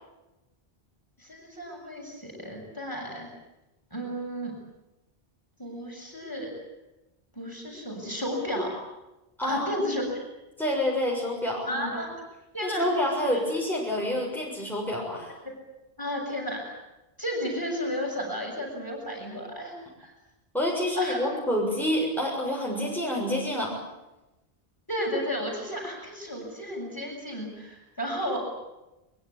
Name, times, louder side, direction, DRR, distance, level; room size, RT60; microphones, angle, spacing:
voice 1, 1.2-3.3 3.9-4.5 5.6-6.5 7.3-8.8 9.4-10.2 11.7-12.1 12.5-12.9 13.3-13.4 16.0-16.8 17.2-20.1 21.0-21.2 24.9-28.4, equal, 20° left, 0 dB, 7.4 m, -33 dB
voice 2, 10.6-11.7 12.6-15.4 20.5-23.8, left 1 dB, ahead, -2 dB, 6.8 m, -27 dB
23.5 x 23.0 x 8.6 m, 0.98 s
omnidirectional pair, 1.0 m